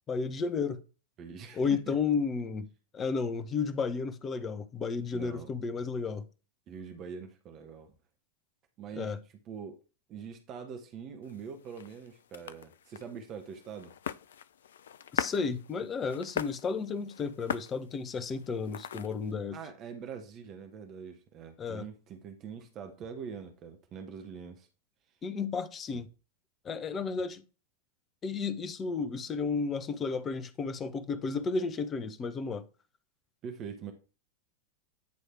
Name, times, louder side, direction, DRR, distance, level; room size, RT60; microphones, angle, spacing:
voice 1, 0.1-0.8 1.5-2.7 2.9-6.2 9.0-9.2 15.1-19.6 21.6-21.8 25.2-26.1 26.6-27.4 28.2-32.6, left 5 dB, 25° left, 0.8 m, -32 dB
voice 2, 1.2-1.9 5.1-5.5 6.7-7.9 8.8-9.2 9.5-9.8 10.1-13.9 19.5-24.7 25.9-26.0 33.4-33.9, right 6 dB, 35° right, 1.1 m, -43 dB
sound 1, 11.2-19.3, left 9 dB, 65° left, 0.4 m, -41 dB
9.5 x 3.2 x 4.4 m
figure-of-eight pair, 90°, 0 cm